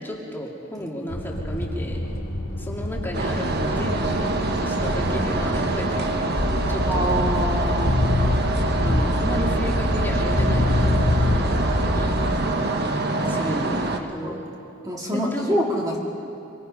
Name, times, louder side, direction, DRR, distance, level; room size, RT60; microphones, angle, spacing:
voice 1, 0.0-2.0 2.5-7.1 8.8-12.2 13.2-14.5 15.1-15.6, equal, 10° left, -2 dB, 2.7 m, -33 dB
sound 1, 1.1-12.0, equal, 85° left, 3.5 m, -31 dB
sound 2, 3.1-14.0, right 2 dB, 50° right, 1.4 m, -25 dB
sound 3, 6.4-12.4, left 1 dB, 25° left, 0.9 m, -24 dB
voice 2, 6.8-8.0 13.1-13.5 14.1-14.4 14.8-16.0, equal, 20° right, -2 dB, 2.3 m, -26 dB
25.0 x 24.0 x 5.6 m, 2.6 s
head